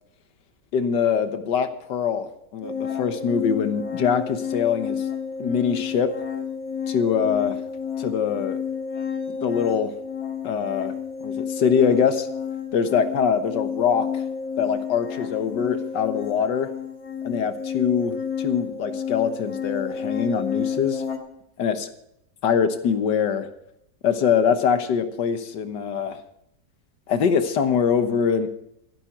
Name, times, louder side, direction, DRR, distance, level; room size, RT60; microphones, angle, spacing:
voice 1, 0.7-5.0 5.4-6.2 6.9-7.6 8.0-8.6 9.3-10.0 10.4-10.9 11.2-12.3 12.7-14.2 14.6-16.7 17.2-21.0 21.6-21.9 22.4-23.5 24.0-26.2 27.1-28.5, left 7 dB, 80° left, 10 dB, 1.8 m, -23 dB
sound 1, 2.6-21.2, left 7 dB, 55° left, 2.1 m, -31 dB
13.0 x 11.5 x 5.9 m, 0.76 s
omnidirectional pair, 1.9 m